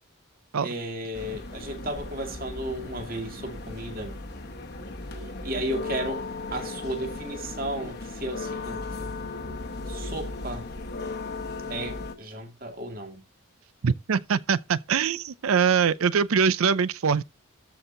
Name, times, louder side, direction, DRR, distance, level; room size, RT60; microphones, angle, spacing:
voice 1, 0.6-4.1 5.4-6.3 6.5-9.1 9.9-10.7 11.7-13.2, right 1 dB, 40° right, 2.1 m, -34 dB
sound 1, 1.1-12.2, left 3 dB, 50° left, 1.1 m, -36 dB
voice 2, 13.8-17.2, right 6 dB, 80° right, 0.5 m, -23 dB
13.5 x 4.5 x 3.8 m
head